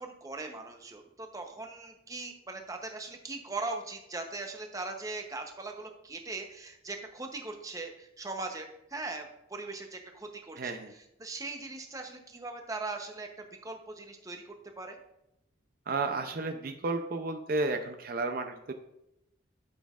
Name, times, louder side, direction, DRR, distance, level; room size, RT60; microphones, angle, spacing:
voice 1, 0.0-10.8 11.2-13.3 13.6-15.0, right 3 dB, 20° right, 4 dB, 0.7 m, -40 dB
voice 2, 10.6-10.9 15.9-18.7, right 3 dB, 50° right, 6 dB, 0.5 m, -32 dB
11.5 x 6.2 x 2.4 m, 0.85 s
head